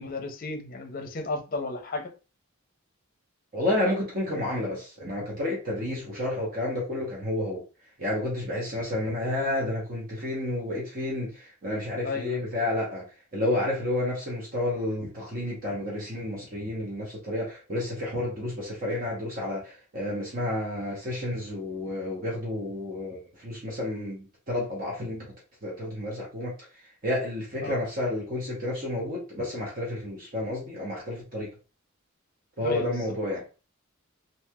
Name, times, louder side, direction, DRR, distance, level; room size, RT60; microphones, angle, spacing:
voice 1, 0.0-2.1 12.0-12.4 27.6-27.8 32.6-33.0, left 3 dB, 45° left, 0.6 m, -33 dB
voice 2, 3.5-7.6 8.0-13.0 13.3-25.3 25.6-26.7 27.0-31.5 32.6-33.5, left 1 dB, 45° right, 0.9 m, -30 dB
3.2 x 2.7 x 2.2 m
head